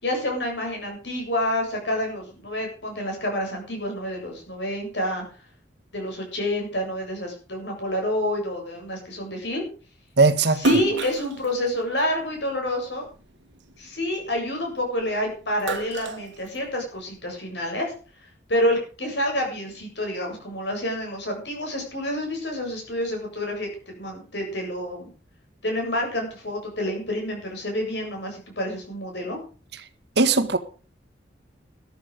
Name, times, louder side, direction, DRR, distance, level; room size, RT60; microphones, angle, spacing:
voice 1, 0.0-5.2 5.9-9.7 10.5-13.0 13.8-25.1 25.6-29.4, left 1 dB, 75° left, 7.6 m, -28 dB
voice 2, 10.2-10.6 30.2-30.6, right 3 dB, 70° right, 1.6 m, -18 dB
Splash splatter, 10.5-13.1 13.6-15.0 15.4-17.1, right 2 dB, 85° right, 1.5 m, -29 dB
13.5 x 13.0 x 5.2 m
head